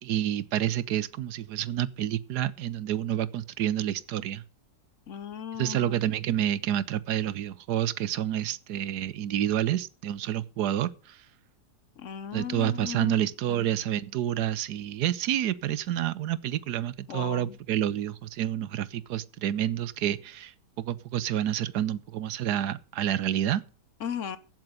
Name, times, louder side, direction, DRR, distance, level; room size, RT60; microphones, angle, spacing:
voice 1, 0.0-4.4 5.5-11.2 12.3-20.5 20.8-23.6, right 11 dB, 85° right, 1.3 m, -29 dB
voice 2, 5.1-6.0 12.0-13.2 13.5-13.7 17.1-17.6 24.0-24.4, left 8 dB, 55° left, 1.0 m, -36 dB
15.0 x 7.7 x 5.2 m
omnidirectional pair, 1.7 m